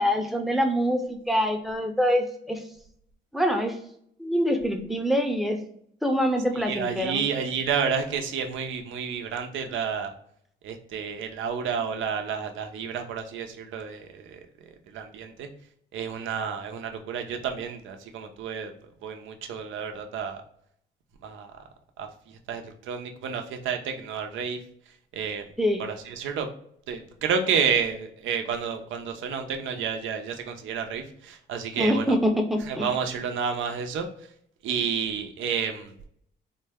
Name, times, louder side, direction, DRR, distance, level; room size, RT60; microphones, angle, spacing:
voice 1, 0.0-2.6 3.3-3.8 4.2-5.6 6.0-7.2 25.6-25.8 31.8-32.9, equal, ahead, 4 dB, 0.6 m, -25 dB
voice 2, 6.5-10.1 10.6-14.4 14.9-15.5 15.9-18.7 19.0-20.4 21.2-21.5 22.0-24.6 25.1-25.4 25.8-26.5 26.9-32.2 32.7-34.1 34.6-35.9, right 6 dB, 80° right, 5 dB, 0.6 m, -30 dB
3.8 x 2.1 x 3.4 m, 0.68 s
cardioid pair, 90°, 20 cm